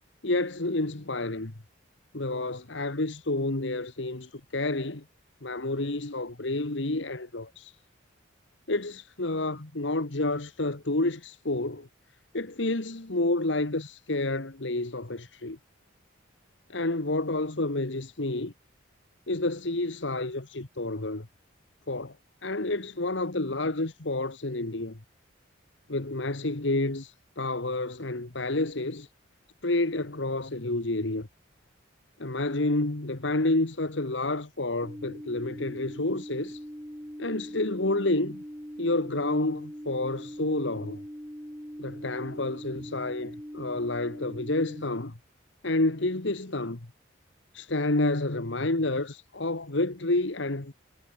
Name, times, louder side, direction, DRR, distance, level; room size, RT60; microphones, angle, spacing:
voice 1, 0.2-1.5 2.1-5.0 5.4-7.7 8.7-11.9 12.3-15.6 16.7-18.5 19.3-21.3 21.9-22.1 22.4-25.0 25.9-29.1 29.6-31.3 32.2-36.6 37.2-38.4 38.8-41.0 41.8-45.1 45.6-46.9 47.5-50.7, left 2 dB, 65° left, 1.6 m, -29 dB
sound 1, 34.8-44.8, equal, 10° right, 6.6 m, -42 dB
head